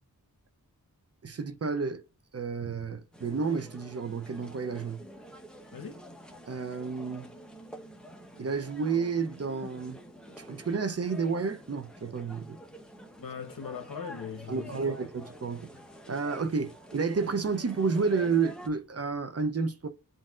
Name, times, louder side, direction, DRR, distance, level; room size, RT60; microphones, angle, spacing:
voice 1, 1.2-2.0 2.3-5.0 6.5-7.3 8.4-10.0 10.4-12.6 14.5-15.7 16.1-19.9, right 5 dB, 45° right, 0.5 m, -31 dB
sound 1, 3.1-18.7, equal, ahead, 0.7 m, -48 dB
voice 2, 5.7-6.1 13.2-15.0, left 6 dB, 65° left, 1.0 m, -40 dB
7.5 x 2.6 x 2.4 m
wide cardioid pair, 70°, 36 cm